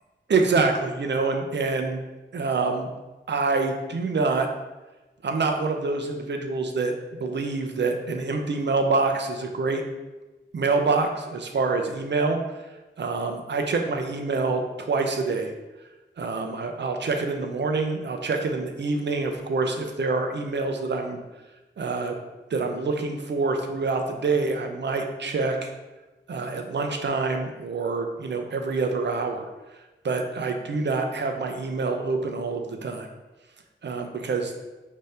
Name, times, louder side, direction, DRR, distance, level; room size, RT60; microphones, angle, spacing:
voice 1, 0.3-2.0 2.3-2.9 3.3-4.5 5.2-9.8 10.5-12.4 13.0-15.5 16.2-21.2 21.8-22.2 22.5-25.7 26.3-29.5 30.0-33.1 33.8-34.5, right 3 dB, 65° right, 4 dB, 0.6 m, -26 dB
5.1 x 2.8 x 3.3 m, 1.1 s
wide cardioid pair, 85°, 20 cm